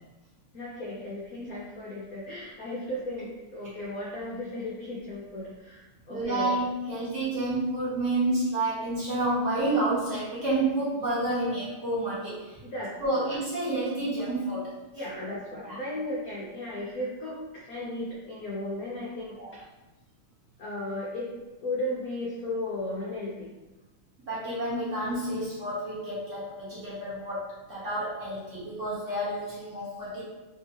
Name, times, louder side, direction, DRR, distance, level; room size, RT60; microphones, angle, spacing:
voice 1, 0.5-6.5 12.6-13.4 14.9-19.6 20.6-21.3 21.6-23.5, left 1 dB, 80° left, -5 dB, 0.8 m, -35 dB
voice 2, 6.1-12.6 13.0-14.7 15.7-15.8 19.4-19.5 24.3-30.2, right 2 dB, 40° right, -10 dB, 1.3 m, -29 dB
3.6 x 2.9 x 2.8 m, 1.1 s
omnidirectional pair, 2.4 m